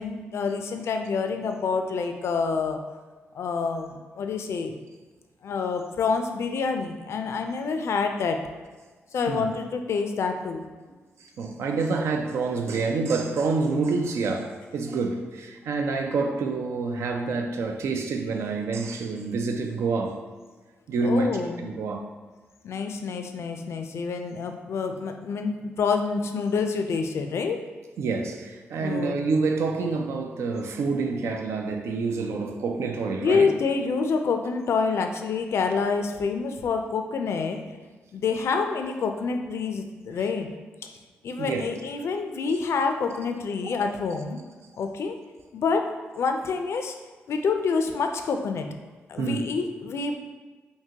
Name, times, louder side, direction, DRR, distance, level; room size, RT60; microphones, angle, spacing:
voice 1, 0.0-2.8 3.3-4.7 5.4-8.5 9.1-10.7 21.0-21.7 22.6-27.7 28.8-29.3 33.2-37.7 38.1-40.5 41.2-44.4 44.8-45.2 45.5-47.0 47.3-48.7 49.1-50.1, left 5 dB, 70° left, 0.3 m, -27 dB
voice 2, 11.4-20.2 20.9-21.3 21.6-22.1 28.0-33.5 41.4-41.7 43.7-43.8 49.2-49.4, right 4 dB, 80° right, 0.4 m, -27 dB
3.6 x 2.7 x 2.8 m
cardioid pair, 55°, 5 cm